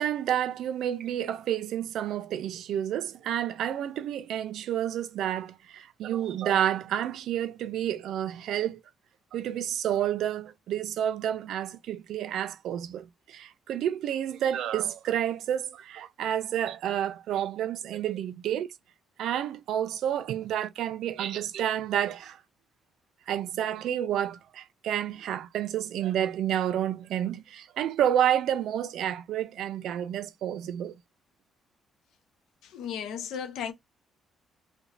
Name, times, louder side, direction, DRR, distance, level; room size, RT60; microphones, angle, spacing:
voice 1, 0.0-8.8 9.3-18.7 19.2-22.4 23.3-31.0, right 10 dB, 80° right, 0.4 m, -30 dB
voice 2, 32.6-33.7, left 8 dB, 80° left, 0.8 m, -35 dB
2.9 x 2.2 x 2.6 m
cardioid pair, 90°, 0 cm